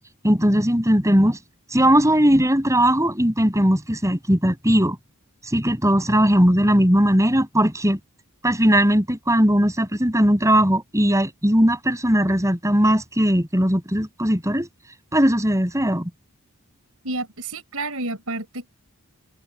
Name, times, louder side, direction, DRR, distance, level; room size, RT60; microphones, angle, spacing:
voice 1, 0.2-1.4 1.7-5.0 5.5-8.0 8.4-14.7 15.1-16.1, equal, 15° right, 6.5 m, -19 dB
voice 2, 17.0-18.7, right 2 dB, 70° right, 5.0 m, -30 dB
head